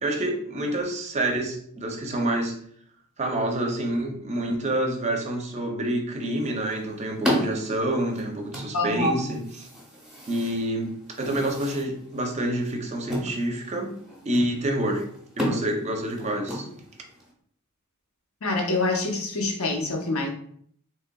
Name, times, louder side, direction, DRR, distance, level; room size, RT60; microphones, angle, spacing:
voice 1, 0.0-2.6 3.2-9.7 10.3-13.9 14.2-15.0 15.4-16.7, right 1 dB, 30° right, 3 dB, 0.5 m, -27 dB
sound 1, 6.2-17.3, equal, 5° right, 0.9 m, -34 dB
voice 2, 8.7-9.3 18.4-20.3, left 2 dB, 75° left, 1 dB, 0.8 m, -26 dB
3.6 x 3.1 x 2.3 m, 0.62 s
head